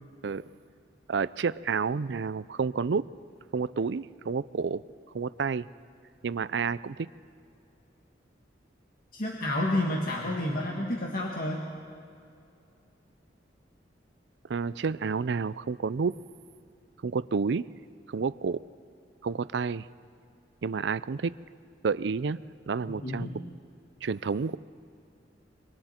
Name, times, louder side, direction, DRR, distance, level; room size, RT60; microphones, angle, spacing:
voice 1, 1.1-3.1 3.5-4.8 5.1-5.7 6.2-7.1 14.5-16.1 17.0-17.7 18.1-18.6 19.2-19.9 20.6-21.3 21.8-22.4 22.7-23.3 24.0-24.6, right 5 dB, 75° right, 17 dB, 0.5 m, -29 dB
voice 2, 9.1-11.7 22.9-23.4, left 1 dB, 50° left, -1 dB, 1.9 m, -30 dB
26.5 x 24.5 x 4.4 m, 2.5 s
head